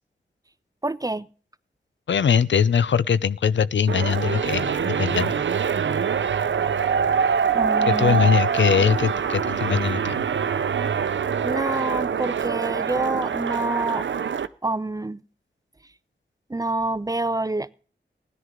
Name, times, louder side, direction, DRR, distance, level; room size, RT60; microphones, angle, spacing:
voice 1, 0.8-1.3 7.5-8.2 11.4-14.1 14.6-15.2 16.5-17.7, right 2 dB, 20° right, 0.5 m, -27 dB
voice 2, 2.1-5.3 7.9-10.2, left 7 dB, 75° left, 0.5 m, -21 dB
sound 1, 3.9-14.5, right 7 dB, 80° right, 0.6 m, -24 dB
16.0 x 10.5 x 3.7 m
wide cardioid pair, 85°, 19 cm